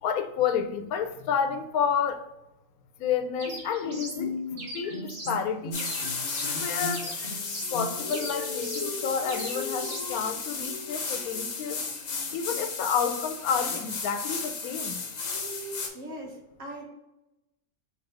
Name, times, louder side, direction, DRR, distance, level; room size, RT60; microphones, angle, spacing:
voice 1, 0.0-2.2 3.0-4.4 4.7-5.8 6.5-7.1 7.7-11.8 12.3-15.0, left 7 dB, 90° left, 1.1 m, -30 dB
Bowed string instrument, 3.4-8.3, left 1 dB, 35° left, 1.2 m, -38 dB
sound 1, 3.4-4.2 4.6-5.4 5.7-6.6 6.9-7.8 8.1-8.9 9.3-10.1, right 1 dB, 50° right, 1.2 m, -40 dB
sound 2, 5.7-15.9, left 4 dB, 70° left, 1.3 m, -33 dB
voice 2, 15.6-16.8, right 1 dB, 65° right, 1.6 m, -41 dB
4.2 x 3.3 x 3.8 m
omnidirectional pair, 1.5 m